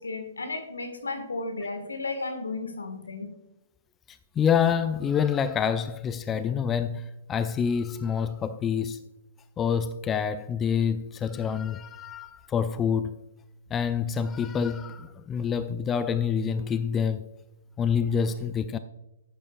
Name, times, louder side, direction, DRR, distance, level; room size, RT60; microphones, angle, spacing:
voice 1, 0.0-3.3, left 3 dB, 85° left, 1.8 m, -34 dB
voice 2, 4.1-9.0 9.6-13.1 13.7-17.3 17.8-18.8, left 7 dB, 20° left, 0.4 m, -27 dB
10.5 x 8.4 x 2.5 m
figure-of-eight pair, 125°, 0 cm